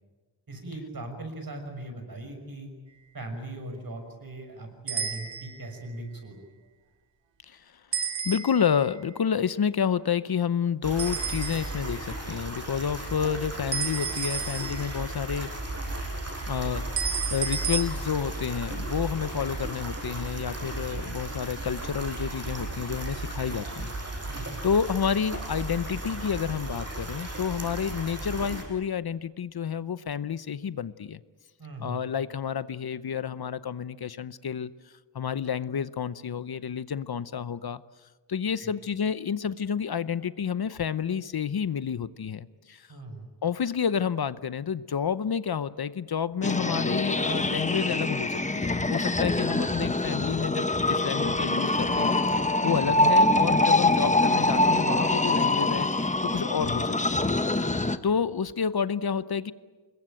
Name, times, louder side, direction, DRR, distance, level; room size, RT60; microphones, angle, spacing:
voice 1, 0.5-2.7 3.1-6.4 24.3-24.6 31.6-32.1 38.6-38.7 42.9-43.3 52.8-52.9, right 2 dB, 55° right, 5 dB, 6.3 m, -39 dB
sound 1, 4.9-5.7 7.9-8.8 11.0-11.9 13.7-15.1 17.0-17.8, right 7 dB, 80° right, 2.3 m, -32 dB
voice 2, 8.2-15.5 16.5-16.9 17.3-23.9 24.6-31.2 31.8-34.7 35.1-37.8 38.3-42.8 43.4-52.1 52.6-55.9 56.2-57.3 57.6-57.7 58.0-59.5, left 7 dB, 60° left, 15 dB, 0.8 m, -29 dB
sound 2, 10.8-28.6, right 2 dB, 35° right, 6.2 m, -35 dB
sound 3, 46.4-58.0, left 2 dB, 15° left, 1.1 m, -24 dB
26.5 x 21.5 x 9.1 m, 1.3 s
wide cardioid pair, 100°, 43 cm